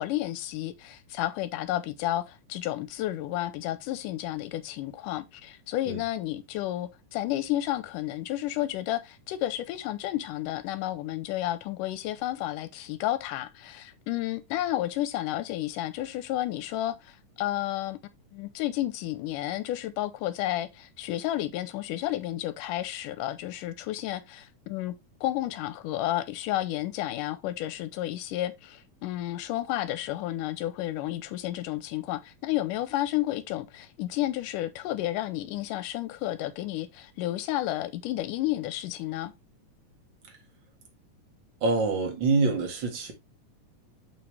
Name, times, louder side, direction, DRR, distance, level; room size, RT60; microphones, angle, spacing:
voice 1, 0.0-18.0 18.3-24.9 25.2-39.3, left 14 dB, 85° left, 2.3 m, -31 dB
voice 2, 41.6-43.1, right 3 dB, 40° right, 2.3 m, -25 dB
6.8 x 6.1 x 3.3 m
omnidirectional pair, 3.7 m